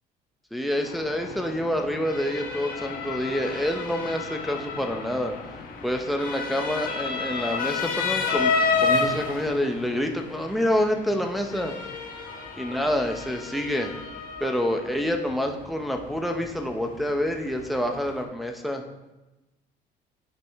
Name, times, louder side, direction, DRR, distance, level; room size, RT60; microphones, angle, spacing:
voice 1, 0.5-5.3 5.8-11.7 12.6-13.9 14.4-18.8, equal, ahead, 3 dB, 0.9 m, -27 dB
Motor vehicle (road) / Siren, 0.8-18.2, left 4 dB, 55° left, 1.5 m, -31 dB
11.0 x 5.0 x 3.6 m, 1.0 s
cardioid pair, 110°, 17 cm